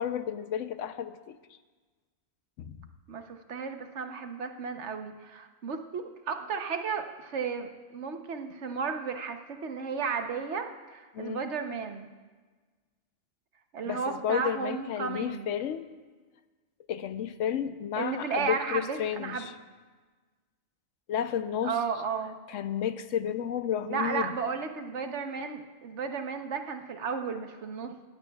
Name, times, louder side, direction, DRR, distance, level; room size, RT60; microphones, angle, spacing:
voice 1, 0.0-1.4 2.6-2.8 11.1-11.4 13.9-15.9 16.9-19.5 21.1-21.8 22.5-24.3, left 9 dB, 85° left, 11 dB, 1.0 m, -32 dB
voice 2, 3.1-12.1 13.7-15.5 18.0-19.5 21.6-22.4 23.8-28.0, right 5 dB, 70° right, 6 dB, 1.2 m, -34 dB
19.5 x 15.5 x 2.3 m, 1.4 s
omnidirectional pair, 1.3 m